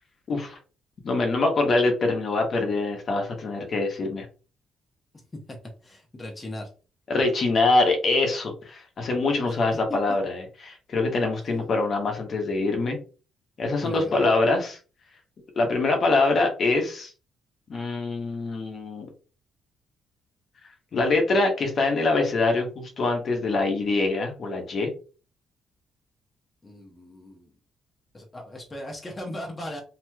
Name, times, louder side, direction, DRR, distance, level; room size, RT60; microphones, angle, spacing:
voice 1, 0.3-0.6 1.0-4.2 7.1-13.0 13.6-14.8 15.6-17.1 17.7-19.1 20.9-24.9, left 3 dB, 50° left, 3 dB, 0.9 m, -24 dB
voice 2, 5.8-6.7 13.8-14.2 26.6-27.5 28.1-29.8, left 1 dB, 20° left, 0 dB, 0.8 m, -38 dB
3.0 x 2.9 x 2.3 m, 0.35 s
cardioid pair, 90°, 0 cm